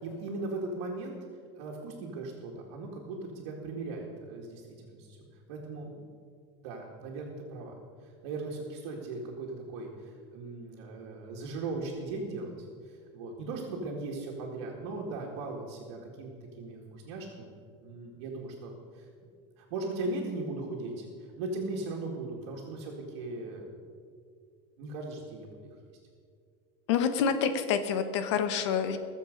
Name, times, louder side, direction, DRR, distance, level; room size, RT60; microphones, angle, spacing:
voice 1, 0.0-1.2 1.6-5.2 5.5-6.1 6.6-7.7 8.0-12.5 12.8-16.3 16.6-17.5 17.8-19.1 19.6-23.7 24.8-25.5, right 3 dB, 65° right, -3 dB, 2.1 m, -38 dB
voice 2, 26.9-29.0, left 7 dB, 85° left, 9 dB, 1.2 m, -27 dB
21.0 x 7.2 x 5.3 m, 2.2 s
cardioid pair, 165°, 14 cm